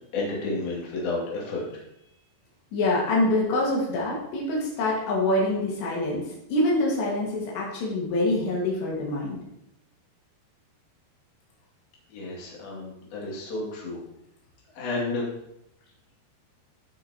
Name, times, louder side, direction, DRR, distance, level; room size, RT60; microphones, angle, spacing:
voice 1, 0.1-1.6 12.1-14.0 14.8-15.3, left 2 dB, 65° left, -5 dB, 4.2 m, -31 dB
voice 2, 2.7-6.2 6.5-9.4, left 1 dB, 85° left, -4 dB, 4.1 m, -25 dB
16.5 x 5.9 x 2.9 m, 0.81 s
omnidirectional pair, 4.8 m